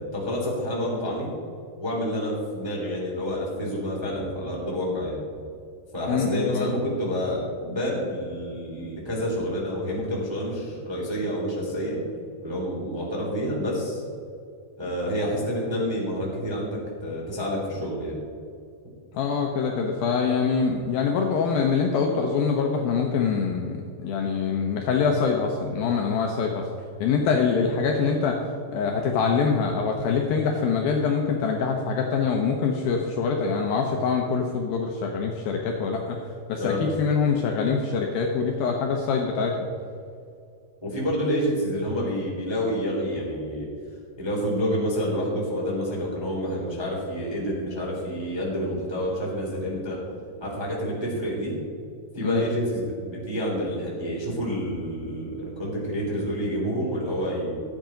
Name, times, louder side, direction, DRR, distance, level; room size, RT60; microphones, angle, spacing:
voice 1, 0.1-1.3 1.8-5.2 5.9-12.0 12.4-14.0 14.8-18.2 36.6-36.8 40.8-43.7 44.2-50.0 50.4-51.5 52.1-57.6, equal, 10° right, -4 dB, 2.0 m, -28 dB
voice 2, 6.1-6.7 19.1-26.7 27.0-28.4 28.7-36.2 36.5-39.6 52.2-52.4, left 5 dB, 75° left, 1 dB, 2.4 m, -24 dB
13.0 x 8.8 x 5.1 m, 2.4 s
omnidirectional pair, 4.9 m